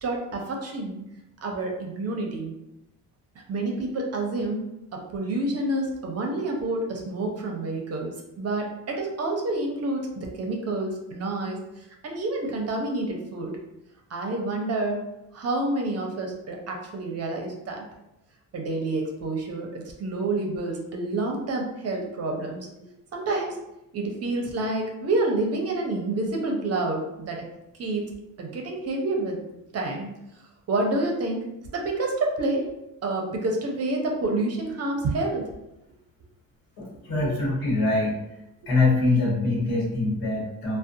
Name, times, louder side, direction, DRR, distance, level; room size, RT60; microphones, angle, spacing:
voice 1, 0.0-1.0 1.4-2.5 3.5-4.6 4.9-11.6 12.0-13.6 14.1-15.0 15.3-17.8 18.5-22.7 23.1-23.6 23.9-27.4 27.8-28.1 28.4-29.4 29.7-30.1 30.7-31.4 31.7-32.6 33.0-35.5, right 2 dB, 45° right, 1 dB, 0.6 m, -28 dB
voice 2, 36.8-38.1 38.7-40.8, left 2 dB, 80° left, -4 dB, 1.1 m, -24 dB
2.5 x 2.2 x 2.6 m, 0.89 s
cardioid pair, 90°, 35 cm